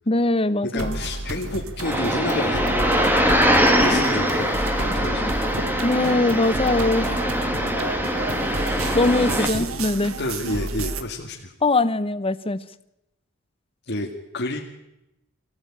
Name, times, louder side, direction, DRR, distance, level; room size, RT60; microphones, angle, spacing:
voice 1, 0.1-1.0 3.8-4.1 5.8-7.2 8.9-10.2 11.6-12.6, left 2 dB, 25° left, 14 dB, 0.9 m, -22 dB
voice 2, 0.6-3.2 3.7-5.5 9.2-9.7 10.2-11.5 13.9-14.1 14.3-14.6, left 1 dB, 55° left, 0 dB, 2.0 m, -30 dB
sound 1, 0.8-11.0, right 2 dB, 80° right, 1.6 m, -31 dB
sound 2, 1.8-9.5, equal, 10° right, 2.6 m, -22 dB
24.0 x 16.0 x 8.8 m, 0.89 s
head